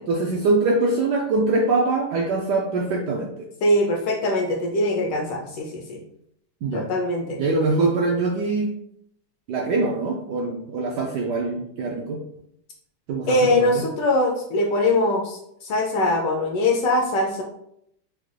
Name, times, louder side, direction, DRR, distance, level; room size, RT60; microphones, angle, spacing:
voice 1, 0.1-3.3 6.6-6.9 7.4-8.7 9.5-12.2 13.1-13.7, right 3 dB, 75° right, 0 dB, 0.9 m, -23 dB
voice 2, 3.6-6.0 6.7-7.4 13.3-17.4, left 1 dB, 75° left, 1 dB, 1.1 m, -22 dB
4.8 x 2.2 x 3.2 m, 0.74 s
omnidirectional pair, 2.3 m